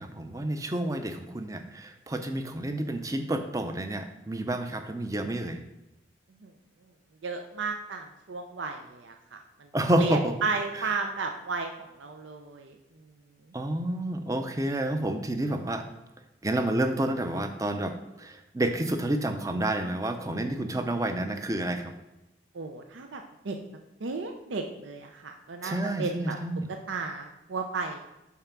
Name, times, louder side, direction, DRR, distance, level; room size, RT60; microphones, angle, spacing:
voice 1, 0.0-5.6 9.7-10.4 10.8-10.9 13.5-15.8 16.4-21.9 25.6-26.7, right 1 dB, 20° right, 7 dB, 0.5 m, -29 dB
voice 2, 7.2-9.4 10.0-11.7 12.0-12.8 22.5-23.6 24.0-26.4 26.9-28.0, right 4 dB, 85° right, 4 dB, 0.6 m, -33 dB
5.6 x 4.8 x 5.8 m, 0.95 s
head